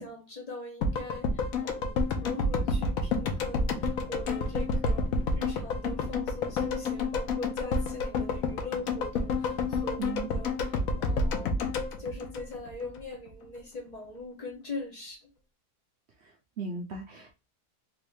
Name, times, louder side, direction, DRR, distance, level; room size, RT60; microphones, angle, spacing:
voice 1, 0.0-11.6 12.0-15.3, left 2 dB, 40° left, 0.6 m, -41 dB
sound 1, 0.8-13.0 13.3-13.4, left 3 dB, 65° left, 1.0 m, -29 dB
voice 2, 10.0-10.4 16.2-17.3, right 4 dB, 65° right, 0.7 m, -38 dB
3.5 x 2.6 x 3.1 m
omnidirectional pair, 1.8 m